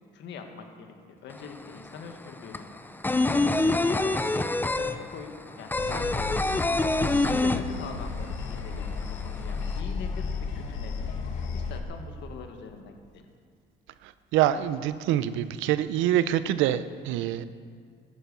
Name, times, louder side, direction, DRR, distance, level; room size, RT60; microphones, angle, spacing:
voice 1, 0.1-0.9 1.2-2.7 3.3-4.5 4.7-5.3 5.6-6.6 7.2-8.9 9.4-11.1 11.5-13.2, left 5 dB, 70° left, 5 dB, 1.7 m, -42 dB
sound 1, 1.3-1.4 1.7-8.2 8.5-8.6 8.9-9.7, left 2 dB, 10° left, 0.6 m, -25 dB
sound 2, 5.7-11.8, left 5 dB, 85° left, 1.4 m, -33 dB
voice 2, 14.3-17.4, right 12 dB, 85° right, 14 dB, 0.6 m, -25 dB
13.5 x 10.0 x 6.9 m, 2.1 s
cardioid pair, 115°, 19 cm